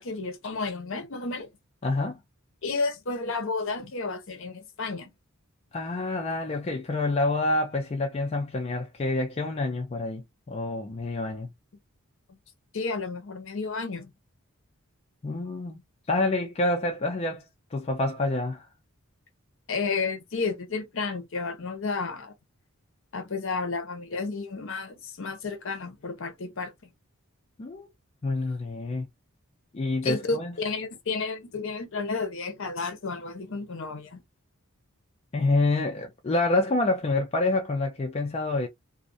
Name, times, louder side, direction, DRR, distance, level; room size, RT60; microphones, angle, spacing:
voice 1, 0.0-1.5 2.6-5.1 12.3-12.4 12.7-14.1 19.7-22.3 23.1-26.7 30.0-34.2, left 4 dB, 60° left, 0.7 m, -32 dB
voice 2, 1.8-2.2 5.7-11.5 15.2-15.8 16.1-17.4 17.7-18.7 27.6-27.9 28.2-29.1 29.7-30.5 35.3-38.7, left 2 dB, 30° left, 0.3 m, -27 dB
2.4 x 2.1 x 2.5 m
head